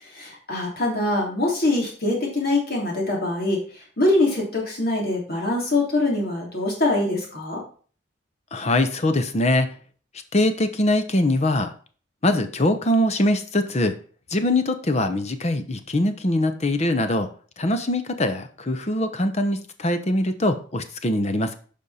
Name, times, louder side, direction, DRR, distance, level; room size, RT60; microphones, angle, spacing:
voice 1, 0.1-3.6 4.0-7.6, left 2 dB, 50° left, -1 dB, 3.3 m, -23 dB
voice 2, 8.5-9.7 10.3-11.7 12.2-13.9 14.3-17.3 17.6-21.5, left 1 dB, 35° left, 9 dB, 0.8 m, -22 dB
10.0 x 5.4 x 4.2 m, 0.42 s
head